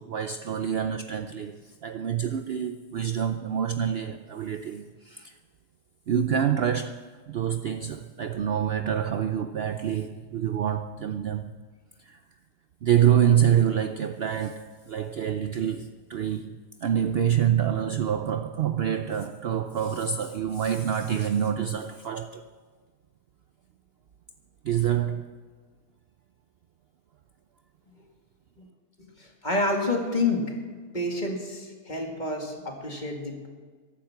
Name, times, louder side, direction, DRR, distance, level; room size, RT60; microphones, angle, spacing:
voice 1, 0.0-5.3 6.1-11.5 12.0-12.2 12.8-22.5 24.6-25.3, right 9 dB, 75° right, 0.5 m, -26 dB
voice 2, 29.0-30.5 30.9-33.5, left 2 dB, 30° left, 2.2 m, -29 dB
14.5 x 12.0 x 5.9 m
omnidirectional pair, 1.7 m